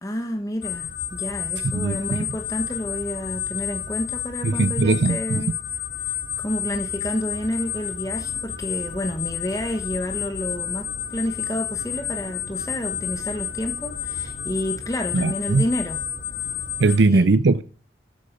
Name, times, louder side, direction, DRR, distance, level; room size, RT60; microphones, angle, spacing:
voice 1, 0.0-5.5 6.1-16.0 17.1-17.3, equal, 20° left, 1.3 m, -30 dB
sound 1, 0.6-17.0, left 8 dB, 65° left, 4.3 m, -30 dB
voice 2, 1.6-2.0 4.4-5.4 15.1-15.6 16.8-17.6, right 3 dB, 75° right, 0.5 m, -19 dB
13.0 x 12.0 x 5.3 m
head